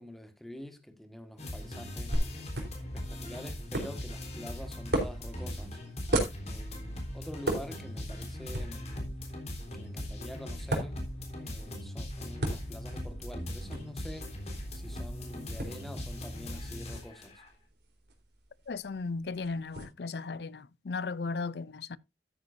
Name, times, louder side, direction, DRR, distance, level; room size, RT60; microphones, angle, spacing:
voice 1, 0.0-2.2 2.9-5.8 6.4-9.1 9.7-11.1 11.4-14.4 14.7-17.4, equal, ahead, 1.6 m, -46 dB
sound 1, 1.4-17.5, left 1 dB, 40° left, 3.7 m, -40 dB
sound 2, 2.1-19.8, right 1 dB, 70° right, 3.7 m, -38 dB
voice 2, 18.7-22.0, left 4 dB, 65° left, 0.5 m, -36 dB
13.0 x 9.5 x 2.6 m
head